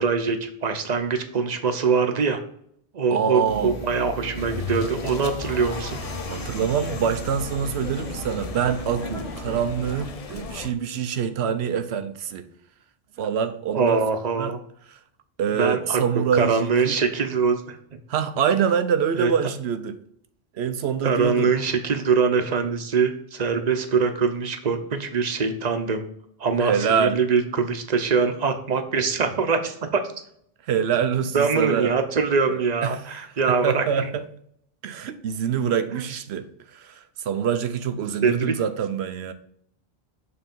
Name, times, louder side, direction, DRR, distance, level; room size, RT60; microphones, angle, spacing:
voice 1, 0.0-2.4 2.9-6.0 13.7-14.6 15.6-16.0 16.3-18.0 19.2-19.3 21.0-26.1 26.4-30.0 31.3-34.1 35.9-36.2 38.2-38.5, right 5 dB, 45° right, 0.8 m, -23 dB
voice 2, 3.1-3.7 6.3-12.4 13.2-14.0 14.4-14.5 15.4-17.0 18.1-20.0 20.5-21.5 26.6-27.2 30.7-31.9 32.5-33.0 33.5-34.2 34.8-36.5 36.7-39.3, right 7 dB, 85° right, 0.9 m, -25 dB
sound 1, 3.5-10.0, right 1 dB, 85° left, 1.5 m, -36 dB
sound 2, 4.4-10.7, left 6 dB, 45° left, 0.6 m, -36 dB
6.9 x 3.4 x 5.2 m
omnidirectional pair, 1.1 m